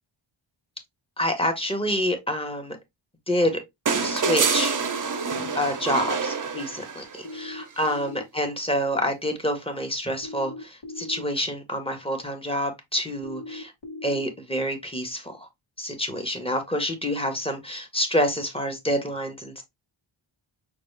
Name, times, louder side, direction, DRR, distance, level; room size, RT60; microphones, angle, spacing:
voice 1, 1.2-2.8 3.3-3.6 4.0-4.7 5.5-13.7 14.0-15.5 15.8-19.6, equal, 10° left, 1.0 m, -27 dB
sound 1, 3.9-7.2 8.7-8.8, right 5 dB, 40° right, 0.6 m, -26 dB
sound 2, 7.2-8.2 10.2-11.2 13.2-14.2, left 3 dB, 60° left, 1.3 m, -38 dB
5.8 x 2.4 x 3.2 m
wide cardioid pair, 120°, 50 cm